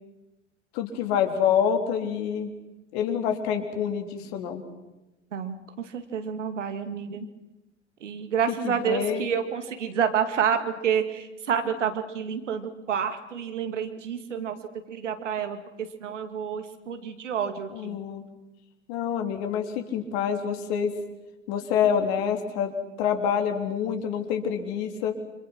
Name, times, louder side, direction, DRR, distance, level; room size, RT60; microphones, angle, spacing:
voice 1, 0.7-2.5 2.9-4.6 8.6-9.2 17.7-18.2 18.9-20.9 21.5-22.7 23.0-25.1, left 8 dB, 60° left, 4 dB, 3.7 m, -27 dB
voice 2, 5.3-7.3 8.0-14.6 14.9-18.0, right 7 dB, 75° right, 8 dB, 2.4 m, -29 dB
28.5 x 26.5 x 6.2 m, 0.98 s
figure-of-eight pair, 70°, 36 cm